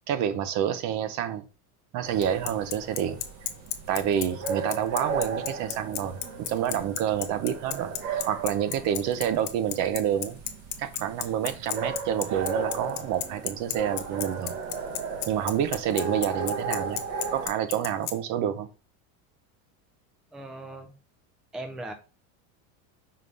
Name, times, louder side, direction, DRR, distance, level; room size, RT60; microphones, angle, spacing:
voice 1, 0.1-1.4 1.9-3.2 3.9-10.4 10.8-14.6 15.3-17.0 17.3-18.7, right 9 dB, 45° right, 0.7 m, -28 dB
sound 1, 2.0-17.5, right 5 dB, 75° right, 1.5 m, -36 dB
Bicycle, 2.2-18.1, left 13 dB, 90° left, 1.1 m, -31 dB
voice 2, 20.3-20.9 21.5-21.9, right 1 dB, ahead, 0.4 m, -38 dB
5.6 x 3.2 x 5.3 m
cardioid pair, 155°, 40 cm